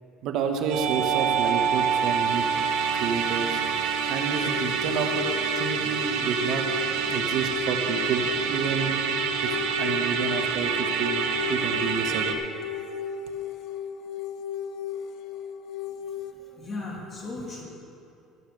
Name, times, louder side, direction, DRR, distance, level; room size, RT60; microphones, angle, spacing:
voice 1, 0.2-2.4 2.9-3.6 4.1-5.3 5.5-6.7 7.1-8.9 9.4-12.4, right 6 dB, 60° right, 5 dB, 1.1 m, -30 dB
Musical instrument, 0.7-12.3, right 7 dB, 85° right, 1.1 m, -27 dB
sound 1, 4.5-16.3, left 8 dB, 60° left, 0.8 m, -35 dB
voice 2, 16.4-17.6, left 2 dB, 30° left, -3 dB, 2.7 m, -36 dB
15.5 x 6.6 x 6.5 m, 2.6 s
cardioid pair, 145°, 0 cm